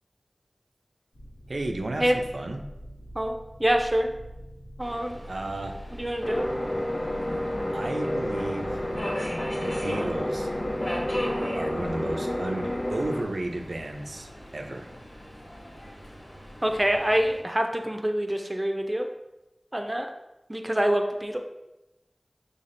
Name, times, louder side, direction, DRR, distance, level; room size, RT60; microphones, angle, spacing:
sound 1, 1.1-12.1, equal, 80° left, 0.8 m, -45 dB
voice 1, 1.5-2.6 5.3-5.7 7.7-8.8 9.6-10.5 11.5-14.9, right 2 dB, 80° right, 3 dB, 0.5 m, -33 dB
voice 2, 3.1-4.1 4.8-5.2 5.9-6.5 16.6-19.1 19.7-20.1 20.5-21.4, right 1 dB, 25° right, 4 dB, 0.5 m, -26 dB
Subway metro underground, 4.8-17.4, equal, 65° left, 1.5 m, -40 dB
sound 2, 6.2-13.2, left 1 dB, 35° left, 0.6 m, -30 dB
5.7 x 3.4 x 2.6 m, 0.98 s
wide cardioid pair, 45°, 0 cm